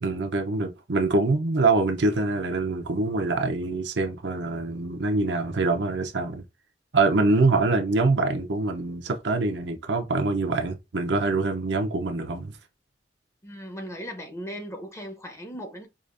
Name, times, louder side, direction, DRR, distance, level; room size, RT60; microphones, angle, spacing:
voice 1, 0.0-6.4 6.9-12.6, right 3 dB, 75° right, 0.7 m, -24 dB
voice 2, 13.4-15.9, equal, 15° left, 0.7 m, -37 dB
4.9 x 2.4 x 2.5 m
head